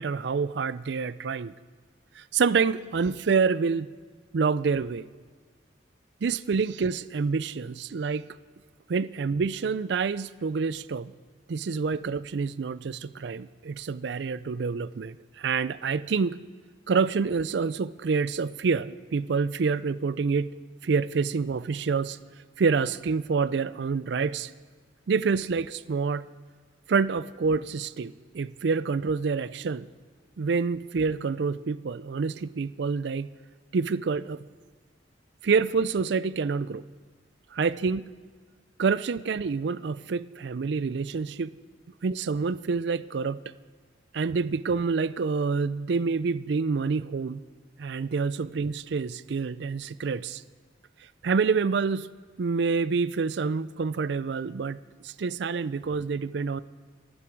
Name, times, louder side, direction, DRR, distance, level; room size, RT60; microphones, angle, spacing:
voice 1, 0.0-1.5 2.2-3.9 4.3-5.1 6.2-8.3 8.9-11.1 11.5-16.4 16.9-20.5 20.8-22.2 22.6-24.5 25.1-26.3 26.9-29.9 30.4-33.3 33.7-34.5 35.4-36.8 37.5-38.1 38.8-41.5 42.0-43.4 44.1-47.4 47.8-50.4 51.2-52.1 52.4-54.8 55.0-56.6, right 5 dB, 65° right, 17 dB, 0.4 m, -27 dB
24.5 x 9.7 x 4.6 m, 1.5 s
head